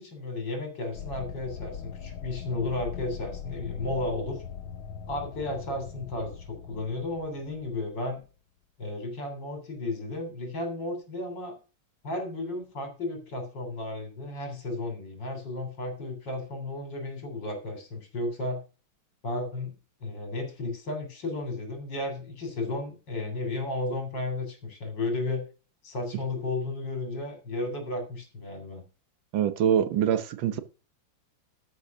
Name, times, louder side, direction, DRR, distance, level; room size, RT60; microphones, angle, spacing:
voice 1, 0.0-4.4 5.1-8.2 8.8-11.6 12.0-18.6 19.2-19.7 20.0-25.5 25.8-28.8, left 2 dB, 60° left, 3.9 m, -33 dB
sound 1, 0.9-8.2, left 8 dB, 85° left, 1.6 m, -41 dB
voice 2, 29.3-30.6, right 9 dB, 75° right, 1.6 m, -24 dB
12.5 x 5.6 x 5.9 m
omnidirectional pair, 2.2 m